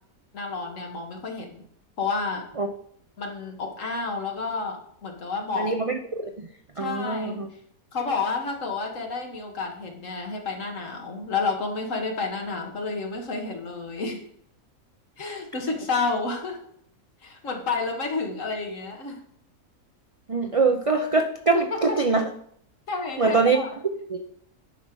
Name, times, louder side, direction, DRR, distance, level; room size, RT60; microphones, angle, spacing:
voice 1, 0.3-1.6 2.0-2.4 3.2-5.7 6.8-7.4 7.9-14.2 15.2-16.6 17.2-19.2 21.5-22.0 22.9-23.7, left 4 dB, 65° left, 2 dB, 1.8 m, -30 dB
voice 2, 5.6-6.3 6.8-7.5 20.3-22.2 23.2-23.6 24.1-24.2, right 4 dB, 55° right, 5 dB, 0.3 m, -23 dB
10.0 x 5.5 x 4.6 m, 0.66 s
omnidirectional pair, 1.5 m